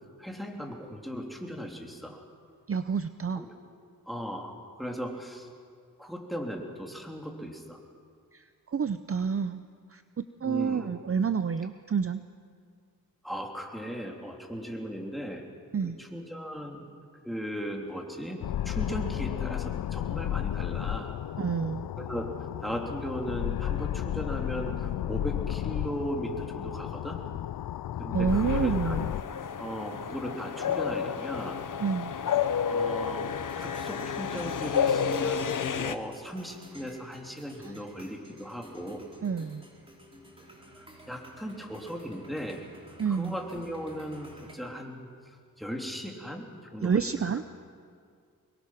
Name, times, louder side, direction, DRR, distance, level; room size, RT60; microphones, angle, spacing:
voice 1, 0.2-2.2 3.3-3.5 4.1-5.5 6.0-7.8 10.4-10.9 13.2-15.5 15.8-21.2 22.0-27.2 28.0-29.0 29.6-31.6 32.6-33.3 33.6-39.1 40.8-42.6 43.1-45.1 45.6-47.4, equal, ahead, 1 dB, 3.3 m, -37 dB
voice 2, 2.7-3.5 8.3-8.4 8.7-9.6 9.9-12.2 15.7-16.0 21.4-21.9 28.1-29.1 31.8-32.1 37.6-37.7 39.2-39.6 43.0-43.4 46.8-47.4, right 6 dB, 40° right, 11 dB, 0.6 m, -29 dB
sound 1, 18.4-29.2, left 12 dB, 85° left, 0.5 m, -33 dB
sound 2, 28.3-36.0, left 7 dB, 60° left, 0.8 m, -30 dB
sound 3, 33.3-44.6, equal, 15° right, 3.8 m, -52 dB
24.5 x 22.0 x 6.0 m, 2.1 s
cardioid pair, 75°, 35 cm